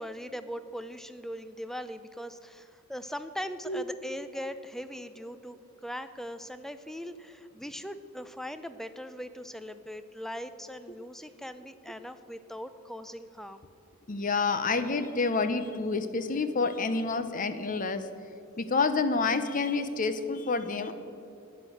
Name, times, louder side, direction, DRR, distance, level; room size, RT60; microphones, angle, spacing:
voice 1, 0.0-5.6 5.8-13.7, equal, ahead, 11 dB, 0.5 m, -40 dB
voice 2, 14.1-18.1 18.6-20.9, left 4 dB, 40° left, 11 dB, 0.8 m, -28 dB
11.0 x 10.0 x 7.8 m, 2.6 s
head